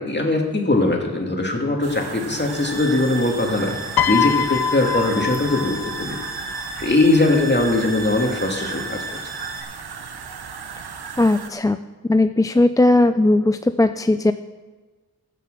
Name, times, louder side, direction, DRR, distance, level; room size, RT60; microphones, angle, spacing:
voice 1, 0.0-3.8 4.1-6.2 6.8-9.0, left 2 dB, 30° left, 1 dB, 2.5 m, -20 dB
sound 1, 1.8-11.5, right 6 dB, 90° right, 0.9 m, -35 dB
sound 2, 2.4-9.6, right 2 dB, 35° right, 2.9 m, -35 dB
Piano, 4.0-6.3 7.4-7.6, left 9 dB, 85° left, 0.6 m, -24 dB
voice 2, 11.2-11.8 12.0-14.3, left 2 dB, 10° left, 10 dB, 0.3 m, -17 dB
15.5 x 6.7 x 6.6 m, 1.3 s
cardioid pair, 50°, 37 cm